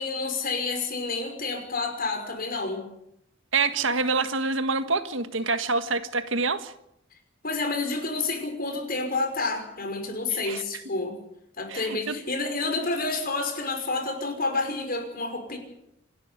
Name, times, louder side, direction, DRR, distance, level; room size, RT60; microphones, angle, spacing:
voice 1, 0.0-2.8 7.4-11.1 11.6-15.6, left 3 dB, 50° left, 5 dB, 5.7 m, -29 dB
voice 2, 3.5-6.7 10.3-10.6 11.7-12.2, right 4 dB, 85° right, 10 dB, 1.7 m, -26 dB
27.0 x 12.5 x 9.8 m, 0.78 s
head